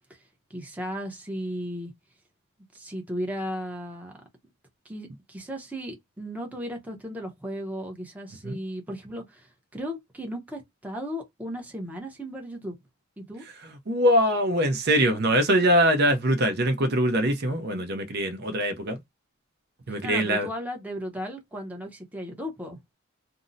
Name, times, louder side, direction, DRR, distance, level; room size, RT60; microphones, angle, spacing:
voice 1, 0.5-1.9 2.7-4.1 4.8-12.8 13.2-13.4 20.0-22.8, equal, 10° right, 0.7 m, -35 dB
voice 2, 13.9-19.0 19.9-20.5, equal, 50° right, 0.6 m, -23 dB
2.6 x 2.0 x 3.7 m
head